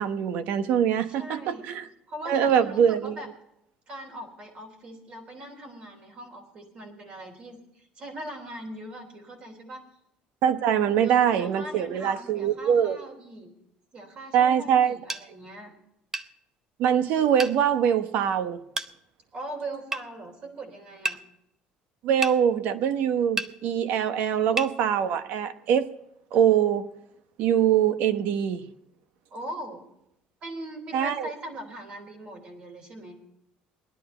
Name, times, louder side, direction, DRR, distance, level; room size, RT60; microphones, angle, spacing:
voice 1, 0.0-1.9 2.3-3.2 10.4-13.0 14.3-15.0 16.8-18.6 22.0-25.9 26.3-26.9 27.4-28.7 30.9-31.3, right 9 dB, 70° right, 1.0 m, -23 dB
voice 2, 1.1-1.6 2.1-3.3 3.9-9.8 10.9-13.5 13.9-15.7 19.3-21.2 29.3-29.8 30.4-33.2, right 1 dB, 45° right, 3.4 m, -40 dB
sound 1, 15.1-15.3 16.1-16.3 17.4-17.6 18.8-18.9 19.9-20.1 21.1-21.2 22.2-22.4 23.4-23.5 24.6-24.7, right 2 dB, 15° right, 0.7 m, -30 dB
20.0 x 11.0 x 4.4 m
cardioid pair, 140°, 3 cm